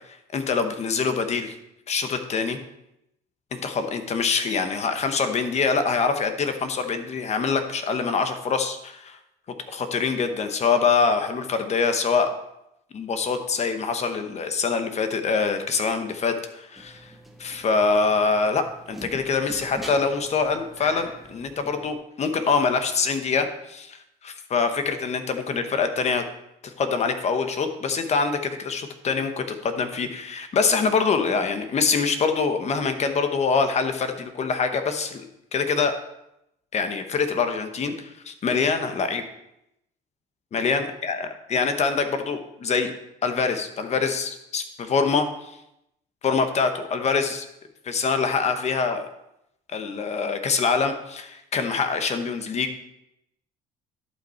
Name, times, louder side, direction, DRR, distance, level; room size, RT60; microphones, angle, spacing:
voice 1, 0.1-1.5 1.9-2.6 3.5-9.2 9.7-12.3 12.9-17.1 17.4-26.2 26.6-35.2 35.5-35.9 36.7-39.2 40.5-41.2 41.5-42.9 43.2-45.5 46.2-47.5 47.8-49.1 49.7-52.8, left 5 dB, 40° left, 8 dB, 1.0 m, -24 dB
sound 1, 16.7-21.9, equal, ahead, 1.3 m, -43 dB
11.5 x 5.5 x 4.4 m, 0.83 s
cardioid pair, 110°, 17 cm